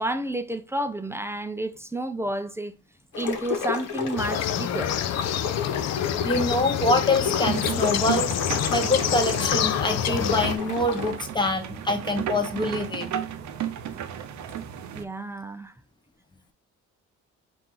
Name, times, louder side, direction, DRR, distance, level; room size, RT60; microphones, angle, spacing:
voice 1, 0.0-2.8 3.1-5.0 14.9-15.7, right 1 dB, 10° right, 0.4 m, -30 dB
sound 1, 3.1-11.1, left 6 dB, 75° left, 1.1 m, -31 dB
sound 2, 4.2-10.6, left 11 dB, 60° left, 0.5 m, -28 dB
voice 2, 6.2-8.3 8.6-13.1, left 2 dB, 15° left, 1.0 m, -25 dB
sound 3, 7.4-15.0, right 9 dB, 70° right, 0.6 m, -33 dB
4.3 x 2.6 x 3.7 m
cardioid pair, 90°, 30 cm